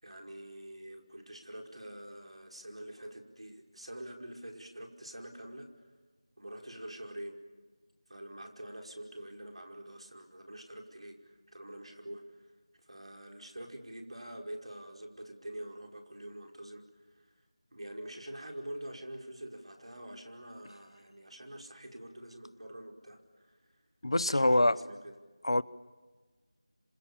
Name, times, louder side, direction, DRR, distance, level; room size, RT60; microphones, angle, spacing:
voice 1, 0.0-5.7 6.4-7.4 8.1-12.5 12.8-17.3 17.7-23.6 24.2-25.1, right 1 dB, 85° right, 2 dB, 5.2 m, -46 dB
voice 2, 24.0-24.8 25.4-25.6, left 1 dB, 65° left, 18 dB, 0.9 m, -24 dB
29.0 x 26.5 x 7.4 m, 1.3 s
figure-of-eight pair, 180°, 3 cm